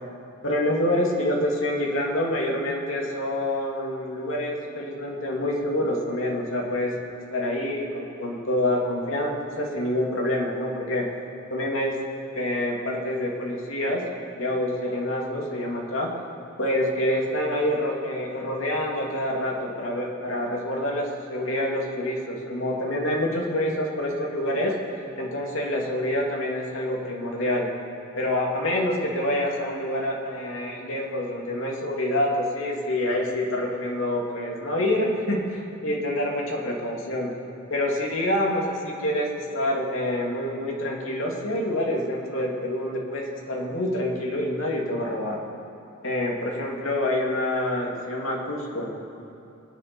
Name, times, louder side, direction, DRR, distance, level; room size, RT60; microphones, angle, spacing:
voice 1, 0.4-6.9 7.3-11.0 11.5-12.0 12.3-14.0 14.3-16.1 16.6-24.7 25.2-27.7 28.2-37.3 37.7-45.4 46.0-48.9, left 1 dB, 75° left, -2 dB, 2.7 m, -27 dB
24.0 x 9.7 x 5.4 m, 2.7 s
head